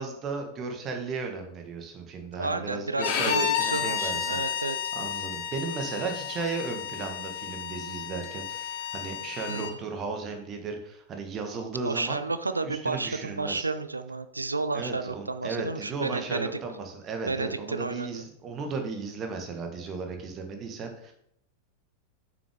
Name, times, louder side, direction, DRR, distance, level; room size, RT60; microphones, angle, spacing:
voice 1, 0.0-4.4 5.0-12.2 12.6-13.6 14.7-21.1, right 4 dB, 30° right, 4 dB, 1.5 m, -35 dB
voice 2, 2.4-4.9 9.5-9.8 11.8-16.5 17.3-18.2, right 3 dB, 80° right, 11 dB, 0.4 m, -31 dB
Bowed string instrument, 3.0-9.7, left 8 dB, 45° left, 0.9 m, -32 dB
6.9 x 6.1 x 3.7 m, 0.71 s
figure-of-eight pair, 90°, 0 cm